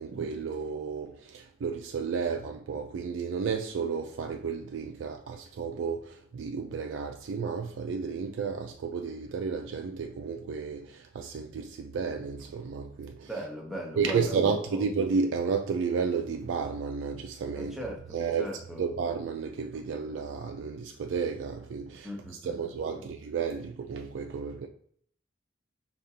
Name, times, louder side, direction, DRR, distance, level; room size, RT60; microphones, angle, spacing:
voice 1, 0.0-13.3 14.0-17.8 18.1-18.5 18.8-24.7, right 5 dB, 80° right, 0.3 m, -32 dB
voice 2, 13.3-14.8 17.5-18.8 22.0-22.5 22.9-23.0, equal, ahead, 0.7 m, -39 dB
5.0 x 2.3 x 2.7 m
head